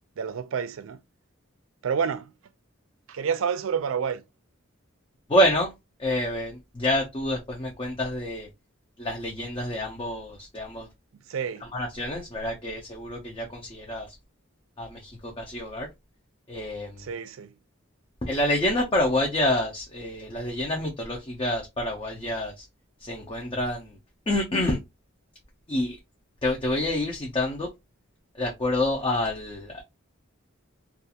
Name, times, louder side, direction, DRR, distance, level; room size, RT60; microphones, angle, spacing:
voice 1, 0.2-1.0 1.8-2.3 3.1-4.2 11.3-11.7 17.0-17.5, right 7 dB, 70° right, 0.4 m, -29 dB
voice 2, 5.3-5.7 6.0-8.5 9.0-10.9 11.6-14.1 14.8-15.9 16.5-17.1 18.2-22.7 23.0-23.9 24.3-24.8 25.7-26.0 26.4-27.7 28.4-29.8, left 1 dB, 25° left, 0.5 m, -27 dB
2.4 x 2.4 x 2.7 m
head